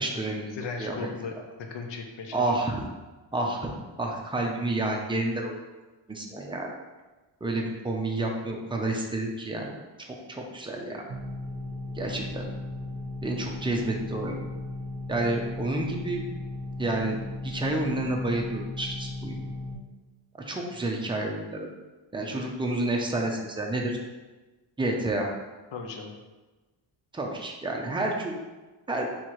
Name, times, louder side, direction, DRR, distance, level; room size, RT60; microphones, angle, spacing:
voice 1, 0.0-0.5 0.8-1.0 2.3-2.8 3.3-3.7 4.0-5.6 6.1-6.7 7.4-9.7 10.0-11.0 11.9-12.5 13.2-14.4 15.1-16.2 16.8-19.4 20.4-21.7 22.1-24.0 24.8-25.3 27.1-28.4 28.9-29.1, right 2 dB, 10° right, 0 dB, 0.5 m, -29 dB
voice 2, 0.5-1.3 1.6-2.4 25.7-26.1, left 4 dB, 65° left, 3 dB, 0.8 m, -36 dB
sound 1, 11.1-19.8, left 2 dB, 50° right, 0.7 m, -36 dB
4.6 x 3.6 x 3.0 m, 1.2 s
cardioid pair, 120°, 48 cm